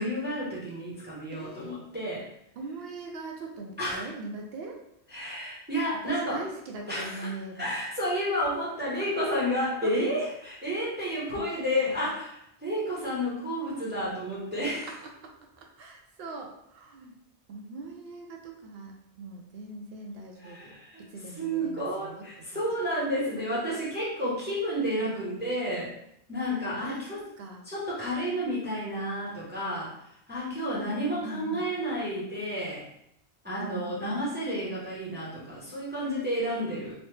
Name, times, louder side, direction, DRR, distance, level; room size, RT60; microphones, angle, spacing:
voice 1, 0.0-2.3 3.8-4.0 5.1-6.4 6.9-7.3 7.6-12.3 12.6-14.9 20.4-21.0 21.4-25.9 26.3-27.2 27.7-29.9 30.3-32.8 33.4-36.9, equal, 10° right, -7 dB, 0.7 m, -31 dB
voice 2, 1.3-1.8 2.6-4.8 5.1-5.2 6.0-7.7 9.0-9.3 9.8-9.9 11.3-11.6 11.9-12.0 14.9-17.2 17.5-22.6 23.2-23.8 25.0-25.2 26.8-27.7 30.5-31.7 33.6-34.2, right 3 dB, 65° right, 1 dB, 0.8 m, -41 dB
3.1 x 2.0 x 3.1 m, 0.77 s
omnidirectional pair, 1.1 m